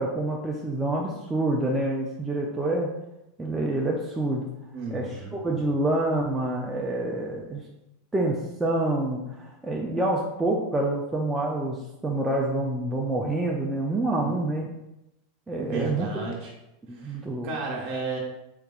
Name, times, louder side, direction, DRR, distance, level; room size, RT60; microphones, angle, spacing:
voice 1, 0.0-2.9 3.4-4.5 4.9-7.6 8.1-14.7 15.5-16.1 16.9-17.5, right 2 dB, 10° right, -2 dB, 0.4 m, -27 dB
voice 2, 4.7-5.3 14.2-14.4 15.6-16.5 16.9-17.2 17.4-18.2, right 4 dB, 50° right, -2 dB, 1.2 m, -33 dB
3.9 x 3.4 x 2.4 m, 0.90 s
supercardioid pair, 125°, 0 cm